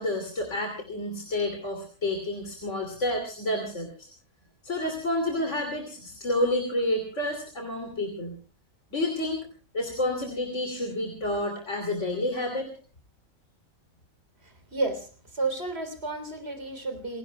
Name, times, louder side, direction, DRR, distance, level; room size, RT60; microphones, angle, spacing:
voice 1, 0.0-4.1 4.6-8.3 8.9-9.4 9.7-12.7, left 1 dB, 60° left, 4 dB, 3.1 m, -29 dB
voice 2, 14.4-17.2, right 3 dB, 50° right, 7 dB, 4.0 m, -32 dB
29.5 x 17.0 x 2.2 m, 0.40 s
omnidirectional pair, 1.4 m